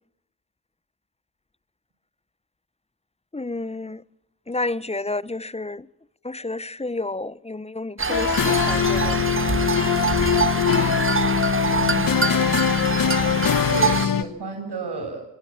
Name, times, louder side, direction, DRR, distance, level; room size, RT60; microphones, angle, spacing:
voice 1, 3.3-4.0 4.5-5.9 6.2-9.2, left 2 dB, 15° left, 0.8 m, -30 dB
sound 1, 8.0-14.1, right 5 dB, 30° right, 1.7 m, -25 dB
sound 2, 8.1-14.2, left 8 dB, 50° left, 1.2 m, -22 dB
voice 2, 11.8-12.6 13.7-15.2, right 4 dB, 65° right, 7.5 m, -33 dB
23.0 x 20.5 x 7.3 m
supercardioid pair, 45°, 42 cm